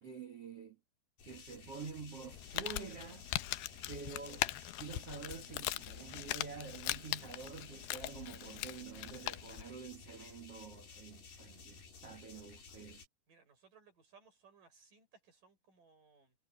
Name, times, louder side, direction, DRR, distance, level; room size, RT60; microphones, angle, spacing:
voice 1, 0.0-0.8 1.2-3.2 3.9-13.0, right 5 dB, 70° right, 1.4 m, -48 dB
sound 1, 1.2-13.1, left 4 dB, 45° left, 6.9 m, -55 dB
Crumpling crinkling, 2.3-9.7, left 17 dB, 90° left, 2.3 m, -41 dB
voice 2, 13.3-16.4, right 5 dB, 45° right, 7.3 m, -64 dB
omnidirectional pair, 5.6 m